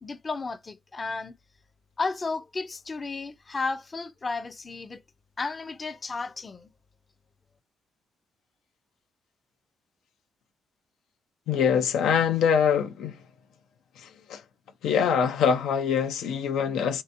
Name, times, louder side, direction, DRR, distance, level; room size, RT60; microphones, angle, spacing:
voice 1, 0.0-1.3 2.0-5.0 5.4-6.7, left 3 dB, 30° left, 0.5 m, -33 dB
voice 2, 11.5-13.2 14.3-14.4 14.8-17.0, left 7 dB, 85° left, 0.5 m, -24 dB
3.4 x 2.8 x 2.6 m
cardioid pair, 80°, 0 cm